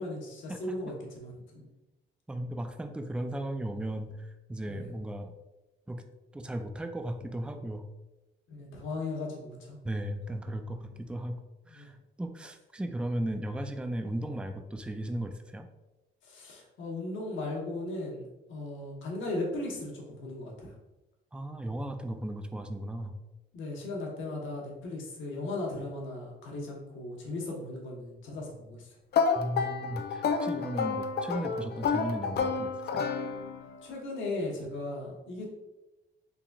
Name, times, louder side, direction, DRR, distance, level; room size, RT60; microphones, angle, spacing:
voice 1, 0.0-1.7 4.7-4.9 8.5-9.8 11.7-11.9 16.2-20.7 23.5-28.9 33.8-35.5, left 2 dB, 75° left, -1 dB, 1.1 m, -37 dB
voice 2, 2.3-5.3 5.9-6.0 6.3-7.9 9.8-11.9 12.2-15.7 21.3-23.2 29.4-33.0, right 1 dB, 5° right, 7 dB, 0.3 m, -36 dB
sound 1, 29.1-33.8, left 5 dB, 55° left, 0.5 m, -30 dB
3.9 x 3.5 x 2.3 m, 1.0 s
cardioid pair, 90°, 20 cm